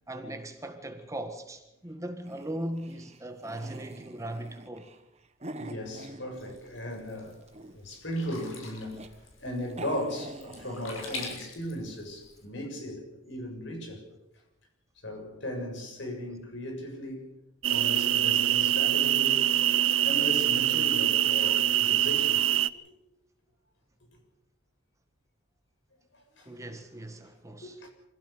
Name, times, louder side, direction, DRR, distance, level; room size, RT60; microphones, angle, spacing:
voice 1, 0.1-4.9 26.4-27.8, right 1 dB, 15° right, 1.6 m, -39 dB
sound 1, 2.2-6.8 7.2-8.0 8.6-9.1 9.4-9.5 9.7-11.4, right 2 dB, 35° right, 1.4 m, -45 dB
voice 2, 5.6-7.4 7.7-9.0 9.4-14.0 15.0-17.3 17.7-19.5 20.0-22.4 26.1-26.6 27.6-27.9, left 1 dB, 60° left, 6.9 m, -37 dB
Sink (filling or washing), 6.3-12.4, left 4 dB, 85° left, 6.5 m, -45 dB
sound 2, 17.6-22.7, right 12 dB, 80° right, 0.7 m, -24 dB
25.5 x 16.0 x 6.8 m
head